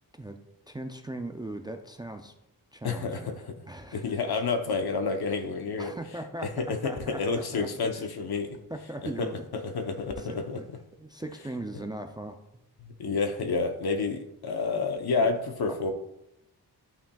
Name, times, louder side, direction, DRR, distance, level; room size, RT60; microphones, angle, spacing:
voice 1, 0.7-2.3 2.7-4.2 5.8-8.0 8.7-9.4 10.2-10.7 11.0-12.4 15.2-15.3 15.7-15.8, right 1 dB, 10° right, 5 dB, 0.3 m, -39 dB
voice 2, 2.8-3.5 3.9-5.9 6.4-8.6 9.2-10.6 12.8-15.9, left 4 dB, 75° left, 6 dB, 0.8 m, -29 dB
11.0 x 5.8 x 2.3 m, 0.86 s
wide cardioid pair, 160°, 38 cm